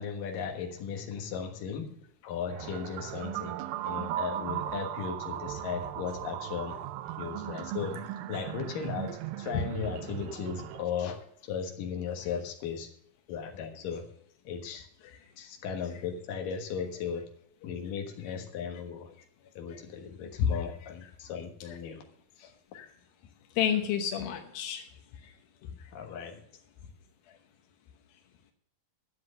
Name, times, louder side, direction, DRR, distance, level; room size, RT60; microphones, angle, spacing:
voice 1, 0.0-3.6 3.9-6.8 7.2-12.9 13.3-14.1 14.4-14.9 15.4-17.3 17.6-19.1 19.6-22.0 22.4-22.5 25.9-26.4, left 7 dB, 70° left, 3 dB, 3.0 m, -36 dB
sound 1, 2.5-10.8, right 12 dB, 85° right, 2.4 m, -37 dB
voice 2, 23.6-24.9 25.2-25.3 25.6-25.9, left 8 dB, 85° left, 4 dB, 2.9 m, -29 dB
12.5 x 7.8 x 6.4 m, 0.69 s
omnidirectional pair, 4.1 m